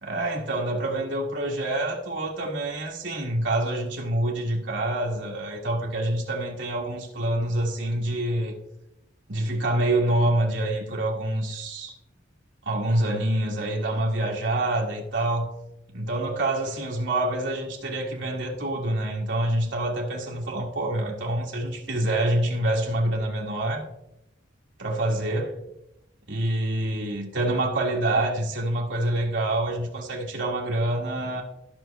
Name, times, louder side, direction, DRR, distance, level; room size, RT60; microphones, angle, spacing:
voice 1, 0.0-8.5 9.3-11.9 12.6-15.5 15.9-23.8 24.8-25.6 26.3-31.4, right 1 dB, 65° right, 1.6 m, -26 dB
14.0 x 5.9 x 3.3 m
head